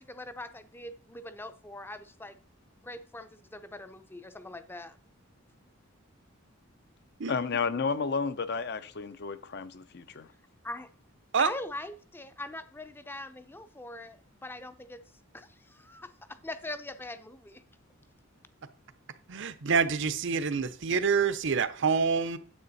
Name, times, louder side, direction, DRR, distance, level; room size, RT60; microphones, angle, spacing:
voice 1, 0.0-2.4 2.8-5.0 10.6-10.9 11.4-15.0 15.3-16.1 16.4-17.6, left 2 dB, 10° left, 0.6 m, -41 dB
voice 2, 7.3-10.3, left 5 dB, 50° left, 0.6 m, -32 dB
voice 3, 19.3-22.4, right 5 dB, 60° right, 0.7 m, -27 dB
9.6 x 7.8 x 4.1 m
head